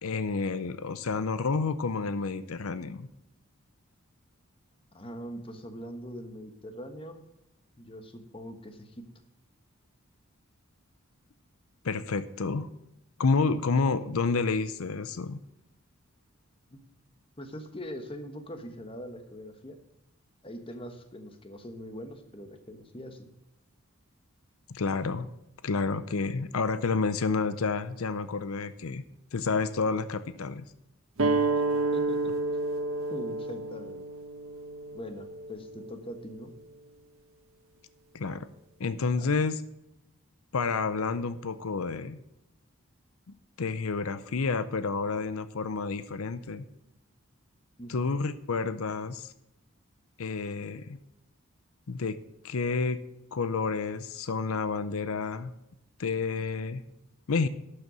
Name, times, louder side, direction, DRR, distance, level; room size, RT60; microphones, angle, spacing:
voice 1, 0.0-3.1 11.8-12.7 13.2-15.4 24.7-25.3 25.6-29.0 29.3-30.6 38.1-38.5 38.8-39.6 40.5-42.2 43.6-46.6 47.9-49.3 50.2-51.0 51.9-52.2 52.4-53.0 53.3-55.5 56.0-56.8 57.3-57.5, left 4 dB, 80° left, 14 dB, 0.6 m, -29 dB
voice 2, 4.9-7.2 7.8-9.0 16.7-16.8 17.4-19.8 20.4-23.3 31.9-32.4 33.1-34.0 34.9-36.5 39.2-39.3 47.8-48.1, equal, 25° left, 7 dB, 1.2 m, -42 dB
sound 1, 31.2-36.3, right 3 dB, 70° right, 1.3 m, -30 dB
12.0 x 6.7 x 6.2 m, 0.89 s
head